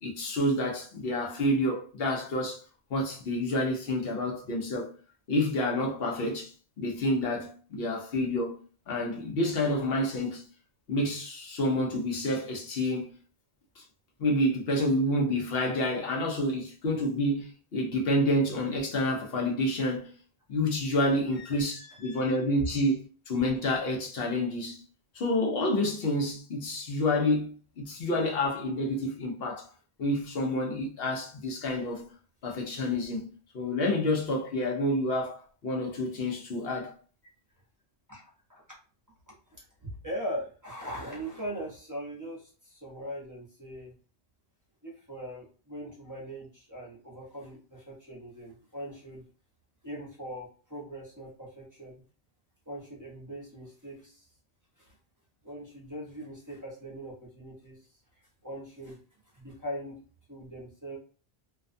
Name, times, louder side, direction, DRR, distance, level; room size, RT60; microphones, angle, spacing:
voice 1, 0.0-2.6 2.9-4.9 5.3-8.5 8.9-10.5 10.9-13.1 13.8-13.9 14.2-20.2 20.5-24.8 25.1-29.7 30.0-32.0 32.4-33.3 33.5-36.9, left 1 dB, 70° left, 0.9 m, -29 dB
voice 2, 21.4-22.4 27.8-27.9 38.1-38.8 39.3-43.9 44.8-49.2 49.8-52.0 52.7-54.3 54.8-55.0 55.4-57.8 58.4-59.0 59.3-60.0 60.3-61.0, equal, 20° right, 0.7 m, -41 dB
2.5 x 2.2 x 2.5 m
omnidirectional pair, 1.0 m